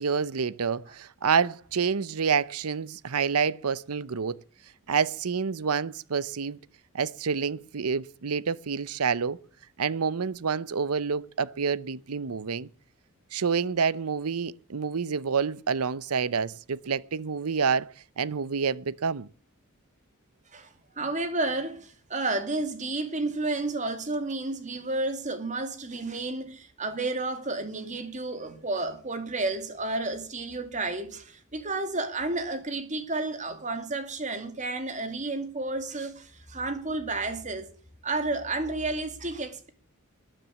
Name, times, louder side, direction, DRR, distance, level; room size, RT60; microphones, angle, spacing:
voice 1, 0.0-4.4 4.9-6.6 6.9-9.4 9.8-12.7 13.3-19.3, right 6 dB, 90° right, 0.7 m, -28 dB
voice 2, 20.5-37.7 38.0-39.7, right 2 dB, 35° right, 2.3 m, -31 dB
13.5 x 10.0 x 7.1 m
head